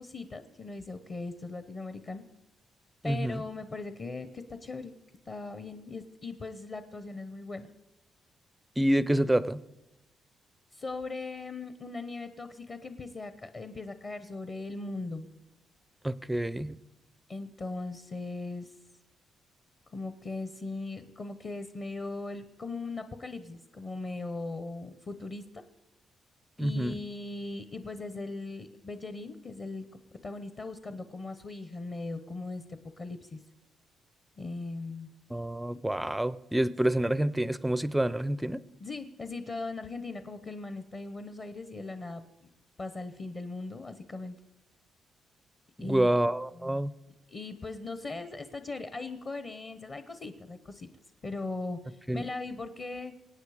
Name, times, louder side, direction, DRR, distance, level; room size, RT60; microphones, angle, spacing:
voice 1, 0.0-2.2 3.0-4.9 5.3-7.7 10.7-15.3 17.3-18.7 19.9-25.4 26.6-29.9 30.2-33.4 34.4-35.1 38.8-42.5 42.8-44.4 45.8-46.1 46.5-46.8 47.3-50.9 51.2-53.1, left 3 dB, 30° left, 10 dB, 0.8 m, -39 dB
voice 2, 3.0-3.4 8.8-9.6 16.0-16.8 26.6-27.0 35.3-38.6 45.8-46.9 52.1-52.2, right 1 dB, 5° right, 17 dB, 0.4 m, -28 dB
24.5 x 9.1 x 4.9 m, 0.95 s
cardioid pair, 160°, 0 cm